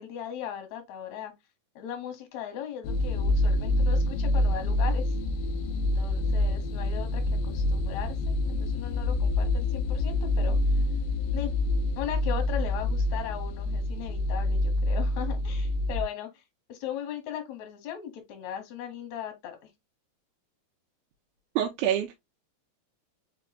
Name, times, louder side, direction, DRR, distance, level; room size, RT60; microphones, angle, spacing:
voice 1, 0.0-1.3 1.8-5.1 5.7-10.6 11.3-11.5 12.0-16.4 16.7-19.7, left 9 dB, 65° left, 2.0 m, -38 dB
sound 1, 2.8-16.0, left 2 dB, 85° left, 2.0 m, -27 dB
voice 2, 21.6-22.2, right 10 dB, 80° right, 2.5 m, -26 dB
4.9 x 4.7 x 2.3 m
omnidirectional pair, 4.6 m